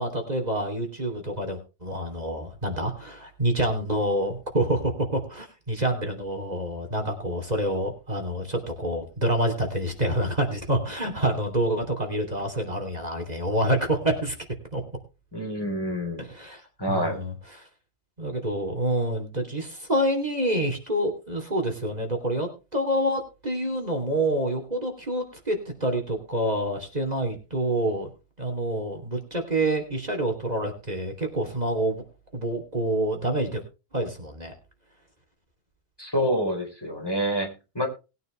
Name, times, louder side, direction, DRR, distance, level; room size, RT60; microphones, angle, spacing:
voice 1, 0.0-14.3 14.7-14.8 16.2-16.6 16.9-17.7 18.2-28.1 28.4-32.0 32.3-33.6 33.9-34.5, right 1 dB, 40° right, 4 dB, 3.3 m, -27 dB
voice 2, 15.3-16.3 16.8-17.2 36.0-37.9, equal, 20° left, 2 dB, 4.3 m, -27 dB
20.0 x 9.3 x 3.3 m, 0.31 s
omnidirectional pair, 1.1 m